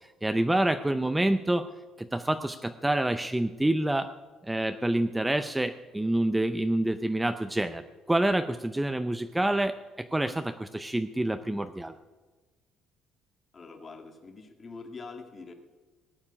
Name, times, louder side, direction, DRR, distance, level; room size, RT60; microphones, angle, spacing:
voice 1, 0.2-1.7 2.0-4.1 4.4-7.8 8.1-11.9, right 1 dB, 5° right, 9 dB, 0.5 m, -27 dB
voice 2, 13.5-15.5, left 4 dB, 25° left, 5 dB, 1.7 m, -44 dB
17.5 x 7.4 x 9.8 m, 1.3 s
cardioid pair, 145°, 0 cm